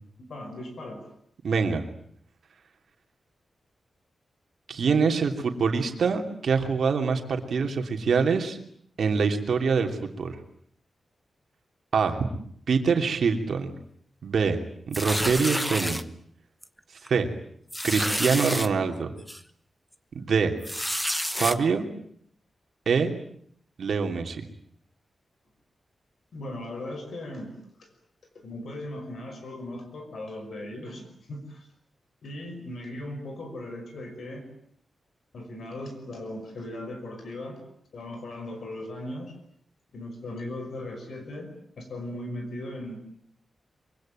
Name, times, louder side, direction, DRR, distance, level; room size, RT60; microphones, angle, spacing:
voice 1, 0.2-1.1 26.3-27.9 28.3-31.7 32.2-34.5 35.3-37.6 37.9-39.3 39.9-42.9, left 1 dB, 60° left, 6 dB, 5.7 m, -38 dB
voice 2, 1.4-1.8 4.7-8.6 9.0-10.4 11.9-12.2 12.7-13.7 14.2-14.6 14.9-16.0 17.1-17.3 17.8-19.1 20.1-20.5 21.4-21.9 22.9-23.1 23.8-24.4, right 5 dB, 60° right, 4 dB, 2.9 m, -24 dB
sound 1, 14.9-16.0 16.6-16.8 17.1-17.2 17.7-18.7 19.3-19.4 20.6-21.6, equal, ahead, 1.0 m, -29 dB
25.5 x 23.5 x 9.1 m, 0.66 s
wide cardioid pair, 175°, 0 cm